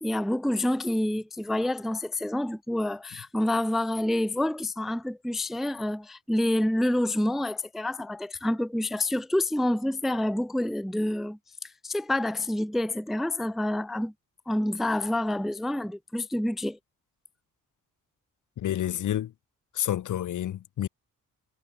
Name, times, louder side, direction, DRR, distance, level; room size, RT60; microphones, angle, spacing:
voice 1, 0.0-11.4 11.8-14.1 14.5-16.8, left 1 dB, ahead, 0.4 m, -28 dB
voice 2, 18.6-19.3 19.7-20.9, left 11 dB, 65° left, 0.8 m, -29 dB
wide cardioid pair, 130°, 33 cm